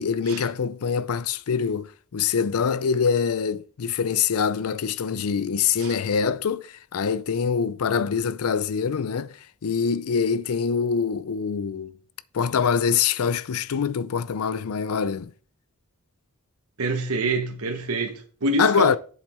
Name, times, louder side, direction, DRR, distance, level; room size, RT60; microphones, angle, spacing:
voice 1, 0.0-9.3 9.6-11.9 12.3-15.3 18.6-19.0, left 6 dB, 70° left, 0.5 m, -24 dB
voice 2, 16.8-19.0, right 2 dB, 70° right, 0.9 m, -26 dB
7.9 x 7.1 x 4.3 m
head